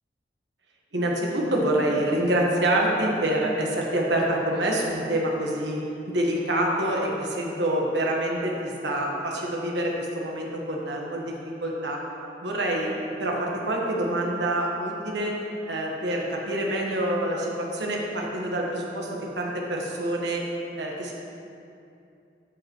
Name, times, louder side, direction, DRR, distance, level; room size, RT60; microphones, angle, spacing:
voice 1, 0.9-11.4 11.6-12.0 12.4-15.3 15.7-20.4 20.8-21.1, right 1 dB, 85° right, -2 dB, 1.3 m, -26 dB
12.0 x 5.5 x 3.1 m, 2.6 s
head